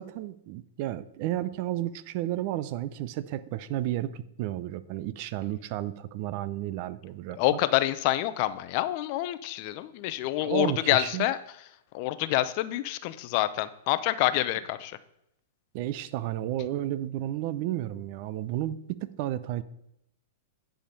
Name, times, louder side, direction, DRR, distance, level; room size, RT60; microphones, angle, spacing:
voice 1, 0.0-7.6 10.4-11.3 15.7-19.6, right 13 dB, 50° right, 15 dB, 0.6 m, -32 dB
voice 2, 7.4-11.4 11.9-14.9, left 15 dB, 50° left, 13 dB, 0.6 m, -27 dB
9.9 x 5.1 x 5.4 m, 0.81 s
hypercardioid pair, 115°, 0 cm